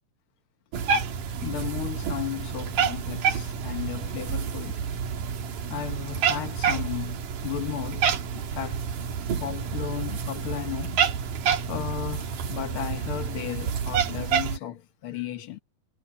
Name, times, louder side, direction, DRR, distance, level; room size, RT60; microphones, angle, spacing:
Cat, 0.7-14.6, right 7 dB, 90° right, 3.5 m, -28 dB
voice 1, 1.4-4.8 5.7-8.8 9.4-11.0 11.7-15.6, left 11 dB, 60° left, 1.6 m, -35 dB
omnidirectional pair, 3.6 m